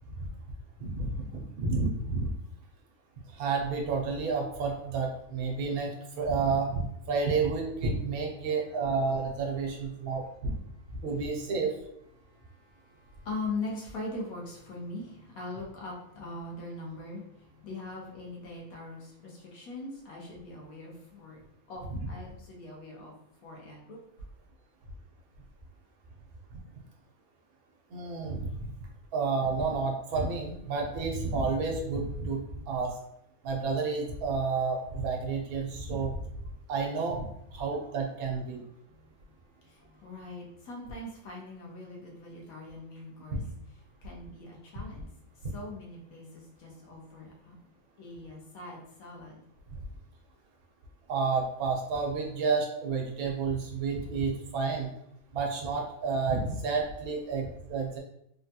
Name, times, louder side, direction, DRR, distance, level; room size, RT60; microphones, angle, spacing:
voice 1, 0.8-1.2 1.6-2.3 3.3-10.6 11.0-11.7 27.9-28.6 29.1-32.4 32.7-33.0 33.4-36.1 36.7-38.6 43.3-43.4 51.1-54.9 55.3-58.0, right 4 dB, 85° right, 0 dB, 1.2 m, -30 dB
voice 2, 12.8-21.4 21.7-23.1 23.4-24.0 39.7-43.4 44.0-45.1 45.5-47.6 48.0-49.4, left 2 dB, 80° left, -2 dB, 1.3 m, -41 dB
3.5 x 2.3 x 2.7 m, 0.76 s
omnidirectional pair, 1.5 m